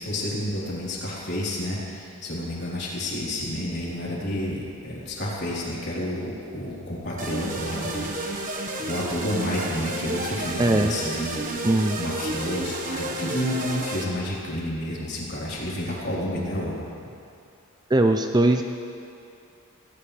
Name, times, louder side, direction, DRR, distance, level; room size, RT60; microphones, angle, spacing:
voice 1, 0.0-11.4 12.0-16.9, left 1 dB, 50° left, -6 dB, 3.9 m, -30 dB
sound 1, 7.2-14.0, right 2 dB, 35° right, 1.3 m, -31 dB
voice 2, 10.6-10.9 11.6-12.0 17.9-18.6, right 2 dB, 20° right, 5 dB, 0.4 m, -20 dB
18.5 x 18.0 x 3.4 m, 2.6 s
head